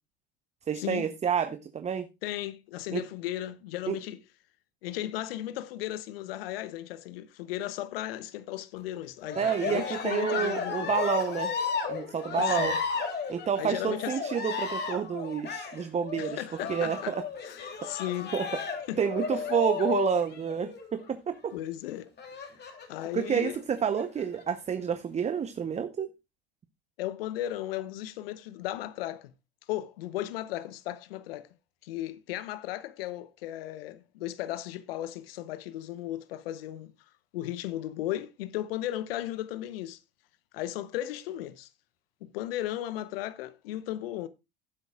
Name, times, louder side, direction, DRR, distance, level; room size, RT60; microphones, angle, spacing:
voice 1, 0.7-2.1 2.9-3.0 3.9-4.0 9.4-11.5 11.9-12.7 13.3-16.4 16.7-17.2 18.3-18.5 19.0-21.5 23.1-26.1, right 7 dB, 20° right, 0.7 m, -29 dB
voice 2, 2.2-4.2 4.8-10.9 12.4-12.8 13.6-14.2 16.2-17.2 17.4-18.3 18.9-19.0 19.3-19.4 21.5-22.1 22.4-22.5 22.9-23.6 27.0-29.3 29.7-31.5 31.8-36.9 37.3-40.0 40.5-41.7 42.2-44.3, left 13 dB, 70° left, 0.8 m, -36 dB
Cheering, 9.2-20.9 22.2-23.1 23.8-24.4, left 5 dB, 35° left, 2.7 m, -33 dB
15.5 x 7.9 x 2.3 m
hypercardioid pair, 80°, 31 cm